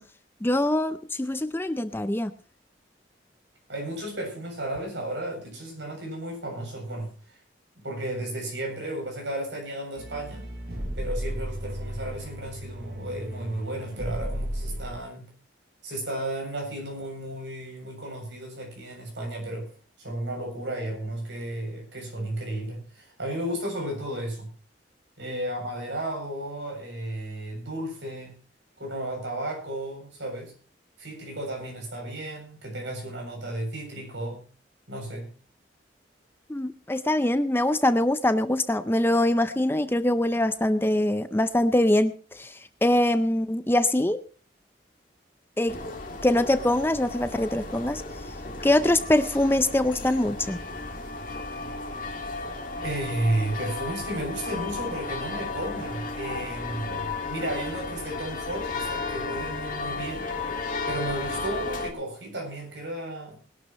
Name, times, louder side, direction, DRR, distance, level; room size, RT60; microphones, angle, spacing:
voice 1, 0.4-2.3 36.5-44.2 45.6-45.8 46.2-48.0 48.6-50.6, left 1 dB, 10° left, 12 dB, 0.5 m, -23 dB
voice 2, 3.7-7.1 7.8-10.4 11.0-15.3 15.8-19.7 20.0-24.5 25.2-28.3 28.8-30.5 31.0-34.4 34.9-35.3 52.8-60.2 60.9-63.4, right 1 dB, 75° right, 2 dB, 7.5 m, -33 dB
sound 1, 10.0-15.0, equal, 55° right, 7.0 m, -34 dB
sound 2, 45.7-61.9, left 3 dB, 45° left, 2.2 m, -34 dB
20.5 x 12.0 x 3.1 m, 0.39 s
head